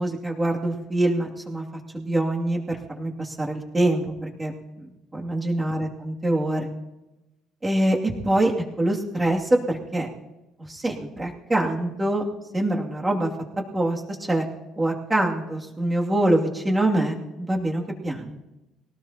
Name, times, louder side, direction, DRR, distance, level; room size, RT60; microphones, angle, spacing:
voice 1, 0.0-1.6 1.9-6.7 7.6-10.1 10.6-12.2 12.5-13.3 13.7-14.5 14.8-18.4, right 1 dB, 15° right, -2 dB, 2.7 m, -25 dB
23.0 x 18.0 x 3.0 m, 0.97 s
cardioid pair, 130°, 0 cm